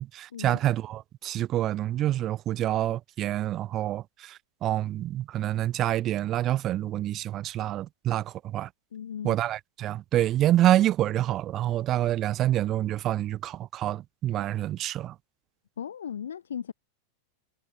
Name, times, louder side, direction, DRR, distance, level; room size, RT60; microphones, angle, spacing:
voice 1, 0.0-8.7 9.2-15.1, right 13 dB, 30° right, 1.4 m, -27 dB
voice 2, 8.9-9.3 15.8-16.7, left 8 dB, 65° left, 1.6 m, -36 dB
figure-of-eight pair, 90°, 0 cm